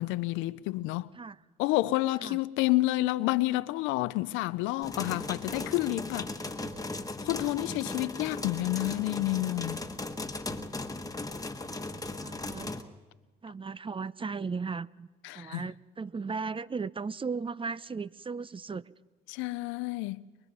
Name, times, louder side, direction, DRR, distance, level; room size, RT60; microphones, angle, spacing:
voice 1, 0.0-1.1 1.6-6.3 7.2-9.8 15.2-15.6 19.3-20.2, left 18 dB, 90° left, 0.6 m, -29 dB
sound 1, 4.8-12.8, left 2 dB, 20° left, 1.5 m, -37 dB
voice 2, 6.5-6.8 7.6-7.8 12.2-12.7 13.4-15.1 15.3-18.9, right 5 dB, 25° right, 0.7 m, -36 dB
23.5 x 22.5 x 5.4 m
supercardioid pair, 65°, 20 cm